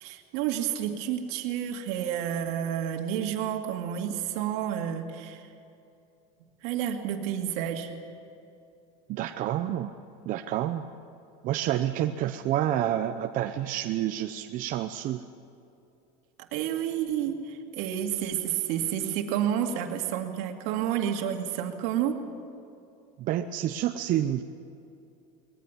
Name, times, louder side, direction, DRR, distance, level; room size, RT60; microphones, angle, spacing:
voice 1, 0.0-5.4 6.6-7.9 16.4-22.2, right 10 dB, 70° right, 4 dB, 2.3 m, -30 dB
voice 2, 9.1-9.9 10.3-10.9 11.4-15.2 23.2-24.4, right 12 dB, 45° right, 6 dB, 0.8 m, -28 dB
20.5 x 15.0 x 9.7 m, 2.6 s
supercardioid pair, 135°, 18 cm